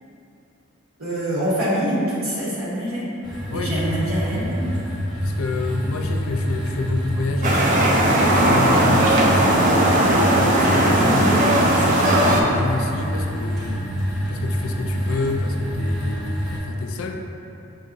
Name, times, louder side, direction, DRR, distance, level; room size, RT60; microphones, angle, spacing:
voice 1, 1.0-3.1 3.5-4.7 11.0-11.3, equal, 85° right, -7 dB, 1.3 m, -25 dB
sound 1, 3.2-16.6, equal, ahead, 1.3 m, -26 dB
voice 2, 5.2-9.8 10.3-13.8 14.3-17.2, left 3 dB, 80° left, 4 dB, 0.4 m, -28 dB
sound 2, 7.4-12.4, right 1 dB, 40° right, 0.4 m, -17 dB
6.2 x 2.8 x 2.6 m, 2.8 s
head